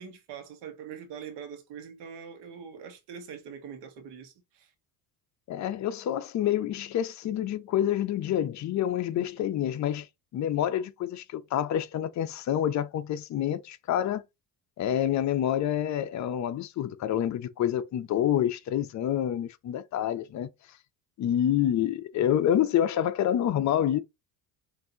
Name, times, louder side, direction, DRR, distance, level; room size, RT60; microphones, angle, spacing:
voice 1, 0.0-4.7 9.1-9.3, right 7 dB, 80° right, 1.2 m, -43 dB
voice 2, 5.5-10.1 10.3-14.2 14.8-20.5 21.2-24.0, left 10 dB, 45° left, 0.6 m, -27 dB
5.7 x 2.7 x 2.7 m
cardioid pair, 115°, 40 cm